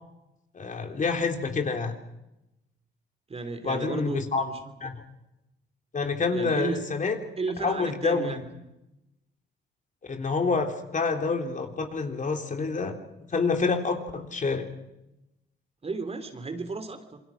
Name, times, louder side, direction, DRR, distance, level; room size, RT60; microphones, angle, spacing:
voice 1, 0.5-1.9 3.6-4.5 4.8-5.0 5.9-7.2 7.6-8.4 10.1-13.0 13.3-14.7, left 4 dB, 40° left, 4 dB, 3.6 m, -27 dB
voice 2, 3.3-4.6 6.3-6.8 7.4-8.5 15.8-17.2, right 3 dB, 30° right, 8 dB, 3.2 m, -33 dB
28.0 x 22.0 x 6.2 m, 0.91 s
cardioid pair, 90°, 20 cm